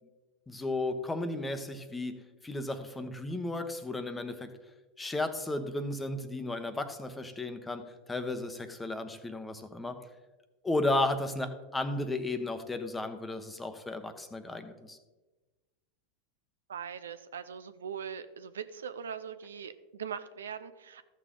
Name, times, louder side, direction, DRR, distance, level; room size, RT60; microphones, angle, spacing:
voice 1, 0.5-4.6 5.0-10.0 10.6-15.0, left 2 dB, 10° left, 9 dB, 1.0 m, -34 dB
voice 2, 16.7-21.0, right 7 dB, 85° right, 12 dB, 0.5 m, -41 dB
13.5 x 6.5 x 3.8 m, 1.2 s
hypercardioid pair, 100°, 0 cm